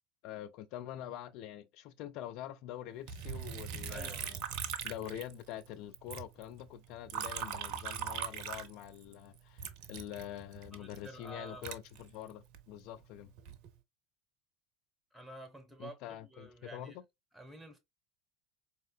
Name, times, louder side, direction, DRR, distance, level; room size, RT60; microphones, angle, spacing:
voice 1, 0.2-4.4 4.8-13.3 15.8-17.0, left 12 dB, 50° left, 0.3 m, -45 dB
Liquid, 3.1-5.7 5.9-9.1 9.6-12.6 13.2-13.7, right 8 dB, 55° right, 0.5 m, -41 dB
voice 2, 3.9-4.4 10.7-11.8 15.1-17.0 17.3-17.8, right 1 dB, 5° right, 1.0 m, -50 dB
4.2 x 2.8 x 2.2 m
figure-of-eight pair, 75°, 0 cm